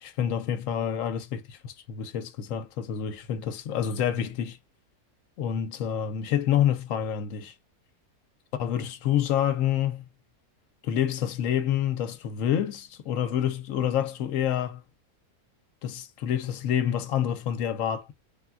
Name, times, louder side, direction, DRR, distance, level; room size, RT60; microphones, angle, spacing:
voice 1, 0.0-4.6 5.4-7.5 8.6-10.1 10.8-14.8 15.8-18.1, left 10 dB, 70° left, 0.9 m, -28 dB
3.6 x 2.2 x 2.2 m
omnidirectional pair, 1.6 m